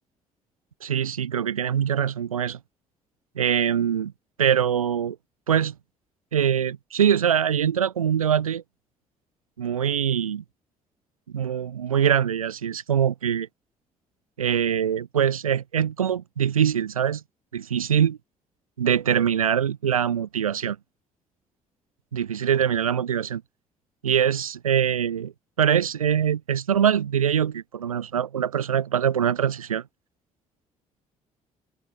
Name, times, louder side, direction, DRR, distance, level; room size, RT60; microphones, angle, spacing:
voice 1, 0.8-2.6 3.4-4.1 4.4-5.2 5.5-5.7 6.3-8.6 9.6-10.4 11.3-13.5 14.4-17.2 17.5-18.2 18.8-20.8 22.1-23.4 24.0-29.8, right 8 dB, 80° right, 2.7 m, -23 dB
open air
figure-of-eight pair, 50°, 18 cm